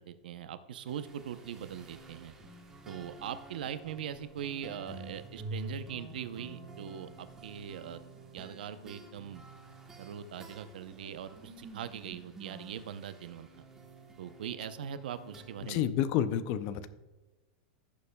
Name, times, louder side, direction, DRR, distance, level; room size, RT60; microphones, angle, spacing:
voice 1, 0.0-2.3 2.9-8.0 8.3-9.4 10.0-13.6 14.2-15.8, right 9 dB, 85° right, 12 dB, 0.6 m, -41 dB
sound 1, 0.8-15.8, right 2 dB, 10° right, 1.0 m, -49 dB
voice 2, 15.6-16.9, left 10 dB, 40° left, 14 dB, 0.5 m, -30 dB
16.0 x 7.0 x 2.2 m, 1.2 s
supercardioid pair, 170°, 5 cm